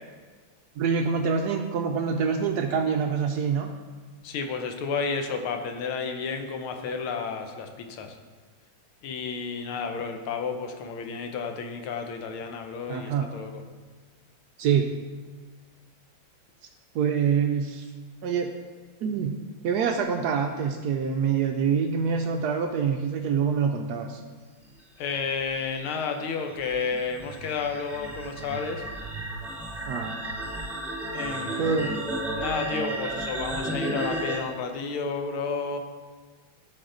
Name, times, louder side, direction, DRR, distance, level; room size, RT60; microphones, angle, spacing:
voice 1, 0.8-3.7 12.9-13.3 14.6-14.9 16.9-17.9 18.2-18.5 19.0-19.4 19.6-24.2 29.9-30.2 31.6-31.9, right 6 dB, 90° right, 4 dB, 0.8 m, -25 dB
voice 2, 4.2-8.2 9.0-13.6 25.0-28.8 31.1-32.0 32.3-35.8, left 5 dB, 85° left, 5 dB, 1.7 m, -31 dB
sound 1, 25.1-34.4, right 1 dB, ahead, 0.5 m, -33 dB
12.5 x 4.3 x 3.8 m, 1.5 s
omnidirectional pair, 2.3 m